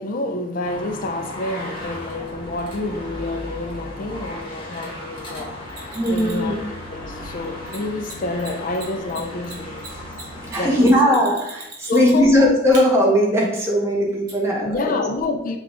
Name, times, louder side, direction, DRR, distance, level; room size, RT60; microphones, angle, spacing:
voice 1, 0.0-9.9 10.6-11.2 11.9-12.3 14.6-15.6, left 2 dB, 45° left, 0.4 m, -28 dB
sound 1, 0.6-10.9, left 1 dB, 25° left, 1.1 m, -35 dB
Mechanisms, 5.7-6.5 7.7-7.8 8.0-8.1 8.4-8.5 8.7-12.3 12.7-12.8 14.3-14.4, right 3 dB, 50° right, 1.6 m, -38 dB
voice 2, 5.9-6.6 10.5-15.0, equal, 15° right, 1.0 m, -18 dB
5.8 x 2.4 x 3.7 m
head